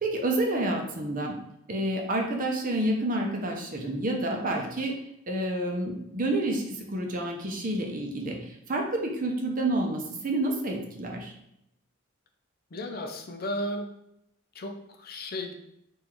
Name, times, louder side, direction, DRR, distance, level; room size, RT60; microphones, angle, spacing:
voice 1, 0.0-1.3 1.7-4.9 5.3-11.3, right 1 dB, 45° right, 1 dB, 0.7 m, -29 dB
voice 2, 12.7-13.9 14.5-15.5, left 1 dB, 50° left, 4 dB, 0.5 m, -34 dB
3.8 x 2.6 x 4.4 m, 0.80 s
head